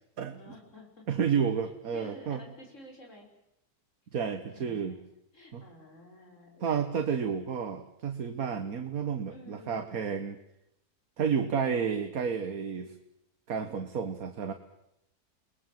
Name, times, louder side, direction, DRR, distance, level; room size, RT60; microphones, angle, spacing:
voice 1, 0.4-1.0 1.9-3.3 4.5-5.0 5.3-7.1 9.3-9.8, left 1 dB, 50° left, 1 dB, 6.1 m, -51 dB
voice 2, 1.1-2.4 4.1-5.0 5.5-5.6 6.6-10.4 11.2-13.0 13.5-14.5, right 6 dB, 65° right, 8 dB, 1.8 m, -31 dB
30.0 x 20.5 x 7.7 m, 0.82 s
omnidirectional pair, 1.7 m